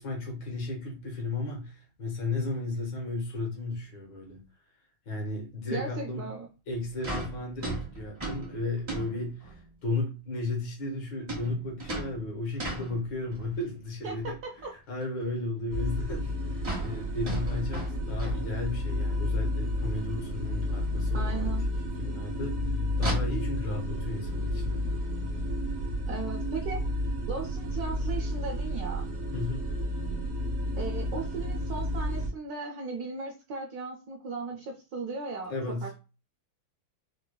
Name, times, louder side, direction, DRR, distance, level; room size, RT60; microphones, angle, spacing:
voice 1, 0.0-4.4 5.1-6.3 6.7-14.4 14.7-21.6 22.0-24.8 29.3-29.7 35.5-35.9, left 2 dB, 75° left, 1.7 m, -34 dB
voice 2, 5.7-6.5 14.0-14.7 21.1-21.7 26.1-26.8 27.3-29.1 30.8-35.5 35.8-36.0, right 4 dB, 70° right, 0.9 m, -37 dB
sound 1, 6.7-6.8 7.0-9.7 11.3-13.6 14.0-14.7 15.0-15.1 15.5-15.6 15.9-16.0 16.1-16.3 16.5-19.0 19.3-19.4 19.8-19.9 21.0-21.1 22.9-23.1, right 2 dB, 40° right, 0.6 m, -38 dB
sound 2, 15.7-32.3, left 1 dB, 85° right, 0.6 m, -31 dB
4.6 x 2.1 x 2.2 m
omnidirectional pair, 2.1 m